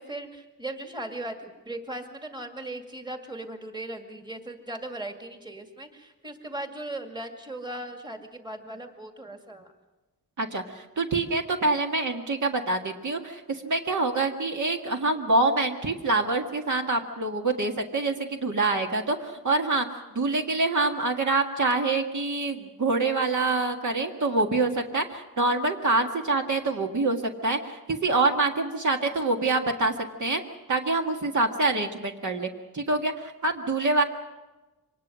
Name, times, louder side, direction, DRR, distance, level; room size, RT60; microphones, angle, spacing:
voice 1, 0.0-9.7, right 1 dB, 15° right, 5 dB, 2.2 m, -38 dB
voice 2, 10.4-19.9 20.2-29.9 30.2-30.4 30.7-34.0, right 3 dB, 55° right, 3 dB, 1.9 m, -26 dB
24.5 x 19.5 x 6.3 m, 1.1 s
wide cardioid pair, 110°, 35 cm